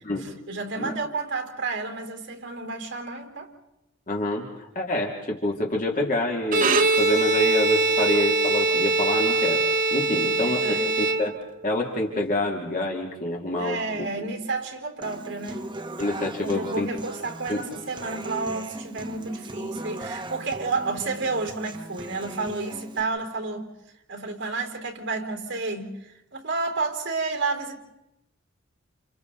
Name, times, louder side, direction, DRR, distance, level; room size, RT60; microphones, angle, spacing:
voice 1, 0.2-3.5 10.0-10.9 13.6-15.7 16.4-23.7 24.1-27.8, right 3 dB, 65° right, 4.2 m, -31 dB
voice 2, 4.1-9.6 9.9-11.4 11.6-14.1 16.0-16.9 17.5-17.6, left 1 dB, 40° left, 2.6 m, -27 dB
Bowed string instrument, 6.4-11.7, right 3 dB, 45° right, 1.1 m, -22 dB
Human voice / Acoustic guitar, 15.0-23.0, right 1 dB, 25° right, 1.2 m, -38 dB
30.0 x 29.0 x 4.0 m
head